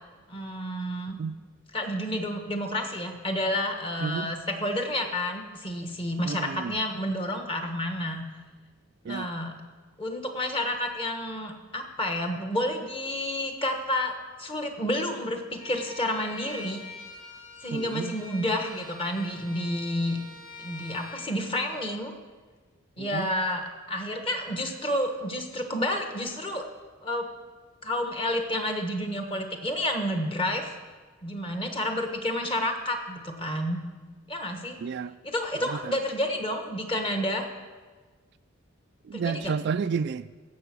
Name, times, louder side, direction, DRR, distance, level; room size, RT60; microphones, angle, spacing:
voice 1, 0.3-1.2 1.7-8.3 9.1-9.5 10.0-14.1 14.4-16.8 17.6-20.2 20.6-22.1 23.0-26.6 27.0-27.3 27.8-30.8 31.2-33.8 34.3-34.8 35.2-37.4 39.1-39.5, left 1 dB, 25° left, 1.3 m, -30 dB
voice 2, 4.0-4.3 6.2-6.8 9.0-9.3 17.7-18.2 23.0-23.3 34.8-35.1 35.7-36.0 39.0-40.3, right 6 dB, 55° right, 0.3 m, -31 dB
Bowed string instrument, 15.6-21.3, left 3 dB, 65° left, 2.4 m, -44 dB
16.5 x 6.9 x 6.1 m
head